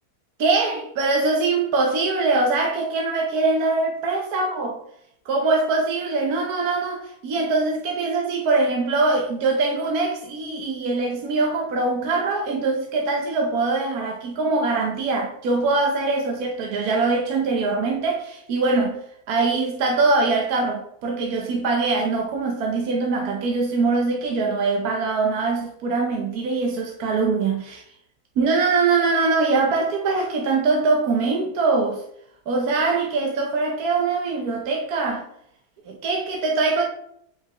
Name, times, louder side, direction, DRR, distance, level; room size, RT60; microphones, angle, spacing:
voice 1, 0.4-4.8 5.2-19.0 19.3-27.8 28.4-32.0 32.5-35.2 35.9-36.8, right 3 dB, 75° right, 1.4 m, -22 dB
7.8 x 5.5 x 3.0 m
omnidirectional pair, 1.6 m